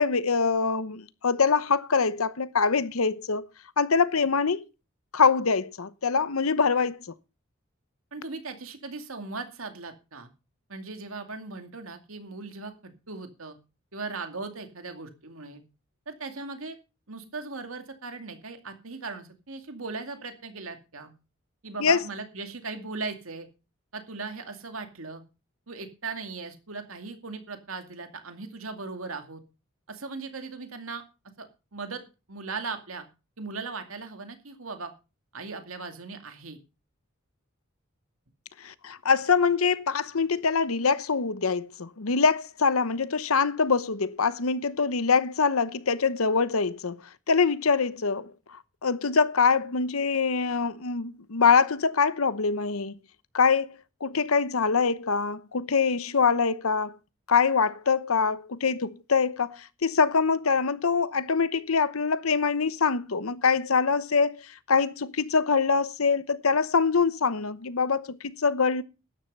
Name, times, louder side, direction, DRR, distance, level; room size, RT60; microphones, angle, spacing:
voice 1, 0.0-3.5 3.8-4.6 5.1-7.1 21.8-22.0 38.6-47.0 47.3-48.3 48.8-53.0 53.3-57.0 57.3-68.8, left 5 dB, 90° left, 0.9 m, -24 dB
voice 2, 8.1-10.3 10.7-13.6 13.9-15.6 16.1-16.8 17.1-21.1 21.6-23.5 23.9-25.2 25.7-29.4 29.9-31.0 31.4-31.5 31.7-32.0 32.3-33.1 33.4-34.9 35.3-36.6, right 4 dB, 80° right, 2.4 m, -38 dB
12.5 x 10.5 x 5.4 m
head